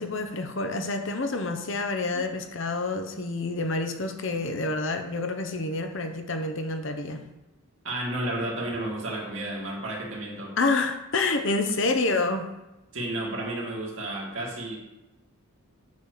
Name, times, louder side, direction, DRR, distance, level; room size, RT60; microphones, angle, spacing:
voice 1, 0.0-7.2 10.6-12.5, left 3 dB, 55° left, 6 dB, 0.8 m, -28 dB
voice 2, 7.8-10.5 12.9-14.8, right 1 dB, 60° right, -3 dB, 2.4 m, -32 dB
8.4 x 4.4 x 6.5 m, 0.98 s
head